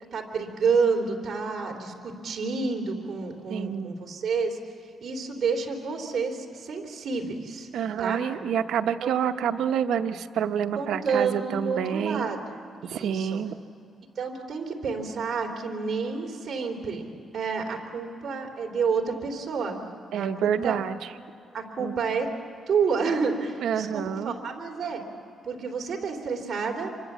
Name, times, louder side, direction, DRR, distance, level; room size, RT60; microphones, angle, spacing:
voice 1, 0.1-4.6 5.0-7.7 8.0-8.2 9.0-9.1 10.7-12.4 12.8-13.4 14.2-19.8 20.1-20.8 21.5-22.3 22.7-25.0 25.4-26.9, right 5 dB, 40° right, 1 dB, 3.2 m, -29 dB
voice 2, 3.5-3.9 7.7-12.3 12.8-13.6 20.1-21.0 21.8-21.9 23.6-24.4, right 8 dB, 80° right, 8 dB, 0.9 m, -28 dB
27.0 x 24.0 x 7.4 m, 2.8 s
cardioid pair, 160°, 0 cm